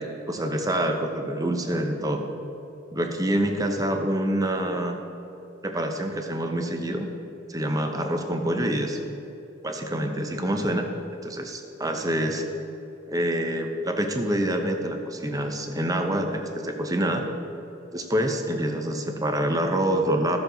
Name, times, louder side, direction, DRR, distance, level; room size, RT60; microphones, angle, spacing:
voice 1, 0.0-2.3 2.9-5.0 5.6-7.1 7.5-9.0 9.6-10.9 11.2-12.4 13.1-17.2 17.9-20.4, right 1 dB, 20° right, 4 dB, 0.8 m, -26 dB
13.5 x 7.1 x 4.0 m, 2.9 s
head